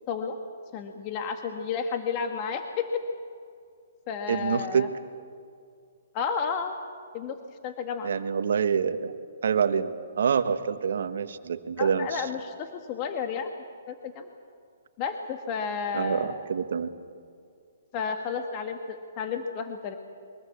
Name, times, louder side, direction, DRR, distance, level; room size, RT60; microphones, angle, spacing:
voice 1, 0.7-3.0 4.1-4.9 6.1-6.8 7.1-8.1 11.8-13.5 13.9-14.3 15.0-16.4 17.9-20.0, left 6 dB, 35° left, 5 dB, 1.5 m, -32 dB
voice 2, 4.3-4.9 8.0-9.1 9.4-9.9 10.2-12.2 15.9-16.9, right 6 dB, 70° right, 10 dB, 1.4 m, -26 dB
23.5 x 20.0 x 8.5 m, 2.3 s
hypercardioid pair, 140°, 0 cm